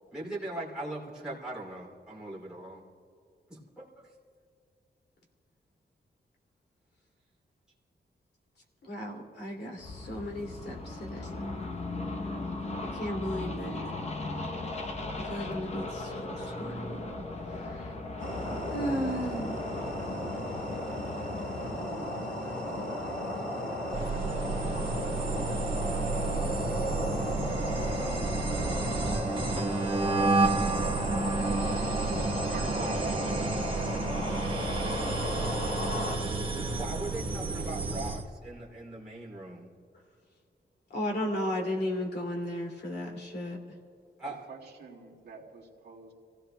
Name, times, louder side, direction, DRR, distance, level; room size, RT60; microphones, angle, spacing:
voice 1, 0.1-2.8 3.5-4.1 36.5-39.7 44.2-44.5, right 1 dB, 5° right, -6 dB, 2.8 m, -40 dB
voice 2, 8.8-11.5 12.8-13.9 15.2-17.9 18.7-19.6 40.9-43.8, equal, 65° left, 0 dB, 2.5 m, -35 dB
sound 1, 9.8-21.9, left 2 dB, 35° left, 0.8 m, -38 dB
sound 2, 18.2-36.2, left 1 dB, 85° left, 4.7 m, -34 dB
sound 3, 23.9-38.2, right 3 dB, 30° right, 1.2 m, -31 dB
voice 3, 32.4-33.9 34.2-34.3 44.2-46.1, right 4 dB, 65° right, -2 dB, 2.2 m, -44 dB
28.5 x 16.5 x 2.2 m, 2.4 s
wide cardioid pair, 180°, 18 cm